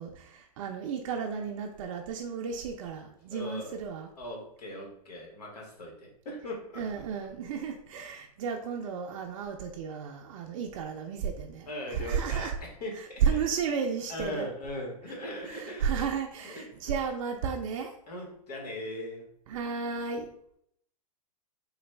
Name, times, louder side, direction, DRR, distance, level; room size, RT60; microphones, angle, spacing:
voice 1, 0.0-4.1 6.8-12.5 12.9-14.5 15.5-17.9 19.5-20.3, right 6 dB, 55° right, 2 dB, 0.5 m, -33 dB
voice 2, 3.3-3.8 4.2-6.8 11.7-13.4 14.1-15.9 16.4-16.9 18.1-19.3, left 1 dB, 80° left, 0 dB, 1.4 m, -39 dB
3.9 x 2.3 x 3.3 m, 0.70 s
hypercardioid pair, 135°, 20 cm